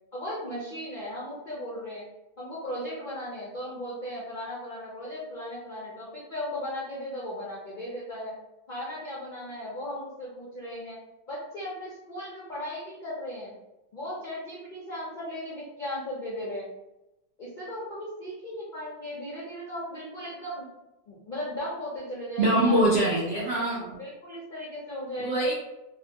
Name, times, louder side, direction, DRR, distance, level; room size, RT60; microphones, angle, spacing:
voice 1, 0.1-2.1 2.4-8.3 8.7-11.0 11.3-13.5 13.9-16.7 17.4-20.7 21.1-22.8 23.5-25.4, left 1 dB, 65° left, -7 dB, 0.5 m, -37 dB
voice 2, 22.4-24.0 25.2-25.5, right 1 dB, 75° right, -5 dB, 0.5 m, -23 dB
2.8 x 2.1 x 2.7 m, 0.96 s
omnidirectional pair, 1.7 m